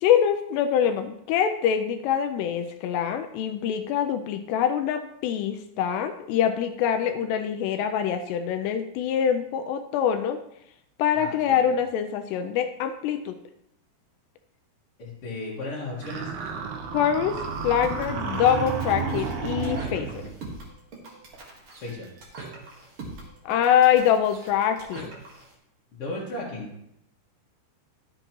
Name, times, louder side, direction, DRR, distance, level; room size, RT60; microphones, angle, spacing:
voice 1, 0.0-10.4 11.0-13.3 16.9-17.3 17.6-20.2 23.5-25.1, left 9 dB, 85° left, 7 dB, 2.5 m, -24 dB
voice 2, 11.1-11.8 15.0-16.3 21.8-22.1 25.9-26.7, left 2 dB, 50° left, -7 dB, 1.8 m, -35 dB
sound 1, 16.0-20.4, right 5 dB, 70° right, 2.8 m, -31 dB
sound 2, 17.3-25.5, right 3 dB, 50° right, 1.7 m, -43 dB
12.0 x 7.7 x 3.0 m, 0.78 s
omnidirectional pair, 5.1 m